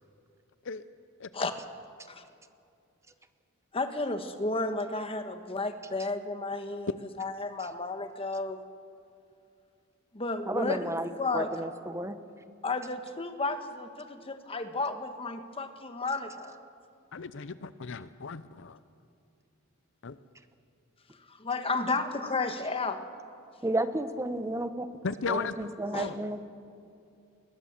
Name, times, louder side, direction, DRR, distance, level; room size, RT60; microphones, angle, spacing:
voice 1, 3.7-8.6 10.1-10.9 11.2-11.5 12.6-16.5 21.3-23.1 25.9-26.1, left 3 dB, 25° left, 8 dB, 1.3 m, -32 dB
voice 2, 10.5-12.2 23.6-25.0 25.3-26.4, right 1 dB, 15° right, 10 dB, 0.9 m, -32 dB
voice 3, 17.1-18.8 20.0-20.2 25.0-25.5 26.0-26.1, left 4 dB, 60° left, 14 dB, 0.6 m, -35 dB
21.0 x 20.0 x 7.4 m, 2.6 s
head